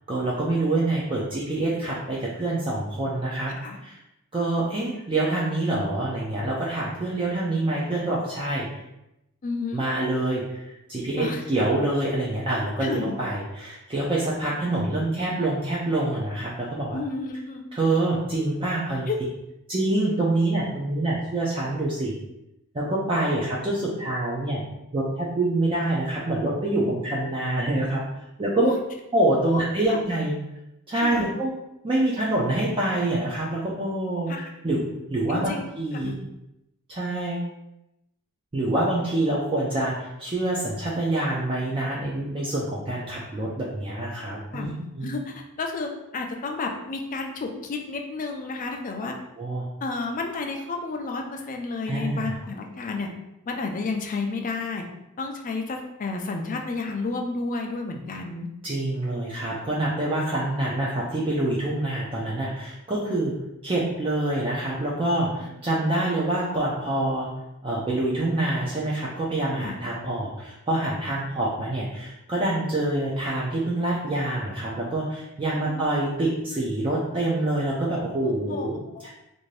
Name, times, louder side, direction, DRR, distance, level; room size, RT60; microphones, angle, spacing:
voice 1, 0.1-3.5 3.8-4.0 4.3-8.7 9.7-10.6 10.9-17.0 17.7-19.1 19.7-22.1 22.7-24.6 24.9-28.0 28.4-28.7 29.1-30.3 30.9-31.5 31.8-34.3 34.6-36.1 36.9-37.5 38.5-44.7 45.0-45.1 49.4-49.7 51.9-52.3 58.6-63.4 63.6-67.3 67.6-79.1, right 2 dB, 25° right, -6 dB, 0.4 m, -26 dB
voice 2, 9.4-9.8 11.2-11.4 12.8-13.2 16.9-17.7 19.1-19.2 28.6-28.8 29.5-30.0 31.0-31.3 34.3-34.5 35.3-35.6 35.9-36.2 44.5-49.2 49.8-53.1 53.5-54.9 55.2-58.5 69.5-69.7 75.6-75.9 78.5-78.7 78.9-79.1, left 3 dB, 35° left, 3 dB, 0.4 m, -31 dB
2.6 x 2.6 x 3.2 m, 0.87 s
head